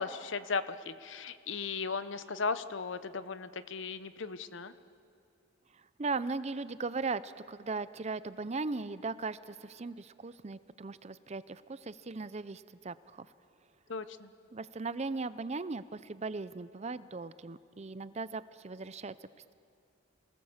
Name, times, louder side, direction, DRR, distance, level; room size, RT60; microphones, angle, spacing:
voice 1, 0.0-4.7 13.9-14.3, left 4 dB, 65° left, 13 dB, 0.8 m, -36 dB
voice 2, 6.0-13.3 14.5-19.1, right 3 dB, 35° right, 15 dB, 0.5 m, -38 dB
28.0 x 19.5 x 7.3 m, 2.3 s
head